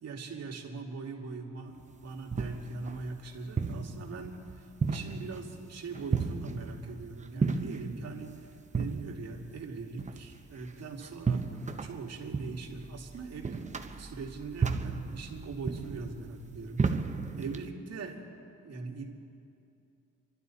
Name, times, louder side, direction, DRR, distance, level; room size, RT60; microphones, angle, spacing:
voice 1, 0.0-11.5 11.8-13.6 13.9-16.9 17.4-18.3 18.6-19.1, right 4 dB, 55° right, 0 dB, 2.5 m, -41 dB
Footstep echoes in church, 1.8-17.7, right 4 dB, 25° right, 0.9 m, -35 dB
29.0 x 12.0 x 4.2 m, 2.6 s
cardioid pair, 90°, 30 cm